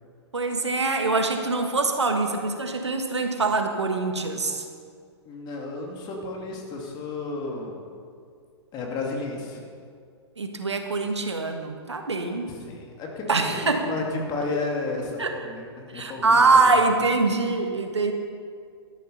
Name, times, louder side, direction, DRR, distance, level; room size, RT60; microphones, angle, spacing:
voice 1, 0.3-4.7 10.4-12.5 13.3-13.9 15.2-15.3 15.9-18.1, right 3 dB, 85° right, 4 dB, 1.6 m, -23 dB
voice 2, 5.3-7.8 8.7-9.6 12.5-16.4 16.6-16.7, left 3 dB, 30° left, 0 dB, 2.6 m, -32 dB
12.5 x 11.0 x 5.5 m, 2.2 s
figure-of-eight pair, 115°, 14 cm